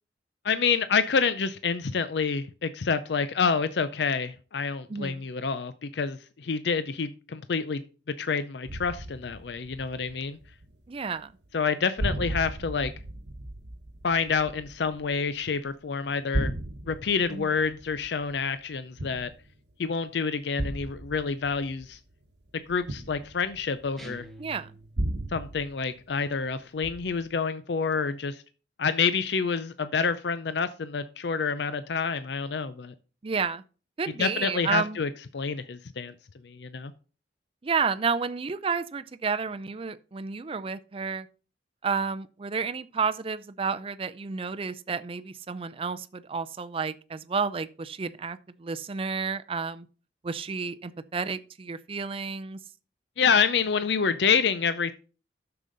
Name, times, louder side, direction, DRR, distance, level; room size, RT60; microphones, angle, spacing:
voice 1, 0.4-7.8 8.2-10.4 11.5-12.9 14.0-16.5 16.9-19.3 19.8-22.0 22.7-24.3 25.3-28.4 28.8-32.9 34.2-36.1 36.4-36.9 53.2-54.9, left 5 dB, 65° left, 0.5 m, -28 dB
voice 2, 4.9-5.2 10.9-11.3 17.3-17.5 24.4-24.7 33.2-33.6 34.0-35.0 37.6-41.3 41.8-49.9 50.2-52.6, right 5 dB, 30° right, 0.4 m, -31 dB
sound 1, 8.7-10.9 11.2-11.7 12.0-15.7 16.1-19.7 20.6-24.1 25.0-26.5 26.8-27.3, right 1 dB, 65° right, 1.0 m, -36 dB
sound 2, 24.0-25.3, right 1 dB, ahead, 1.3 m, -46 dB
9.9 x 6.8 x 3.9 m
head